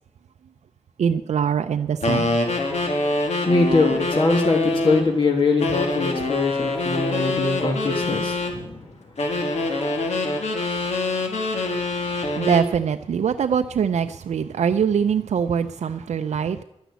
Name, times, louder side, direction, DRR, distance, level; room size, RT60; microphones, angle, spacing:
voice 1, 1.0-2.4 12.4-16.6, right 7 dB, 80° right, 7 dB, 0.5 m, -23 dB
sound 1, 2.0-5.1 5.6-8.6 9.2-12.7, left 2 dB, 75° left, 2.2 m, -25 dB
voice 2, 3.4-8.8, left 3 dB, 50° left, 2 dB, 1.4 m, -22 dB
11.5 x 10.0 x 8.2 m, 0.86 s
wide cardioid pair, 170°, 12 cm